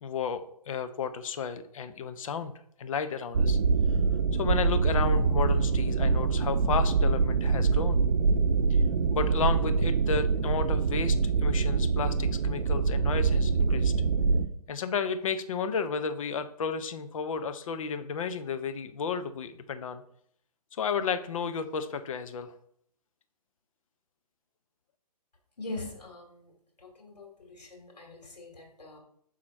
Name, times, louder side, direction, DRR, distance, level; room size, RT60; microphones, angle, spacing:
voice 1, 0.0-2.5 2.8-3.6 4.3-8.0 8.7-8.8 9.1-13.9 14.7-20.0 20.7-22.5, left 6 dB, 55° left, 10 dB, 0.7 m, -32 dB
sound 1, 3.3-14.5, right 4 dB, 80° right, 0.6 m, -25 dB
voice 2, 25.6-26.5 26.8-29.0, left 2 dB, 85° left, 0 dB, 2.6 m, -42 dB
6.2 x 3.8 x 4.2 m, 0.66 s
hypercardioid pair, 140°, 20 cm